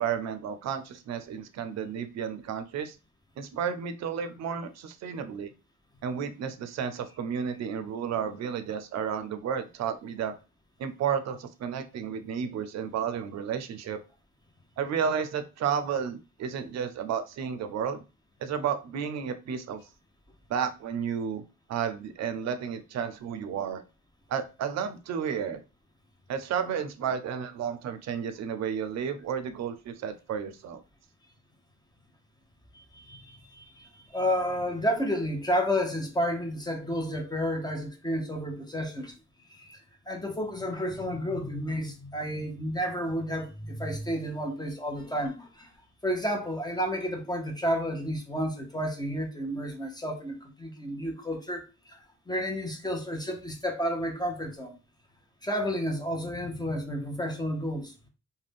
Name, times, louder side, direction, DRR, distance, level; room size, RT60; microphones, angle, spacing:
voice 1, 0.0-2.9 3.4-5.5 6.0-10.3 10.8-14.0 14.8-18.0 18.4-19.8 20.5-21.4 21.7-23.8 24.3-25.6 26.3-30.8, right 7 dB, 60° right, 0.5 m, -32 dB
voice 2, 32.7-39.1 39.5-39.8 40.1-45.7 46.0-52.0 52.3-54.7 55.4-57.9, equal, 15° left, 0.7 m, -31 dB
2.4 x 2.2 x 3.4 m
cardioid pair, 90°, 30 cm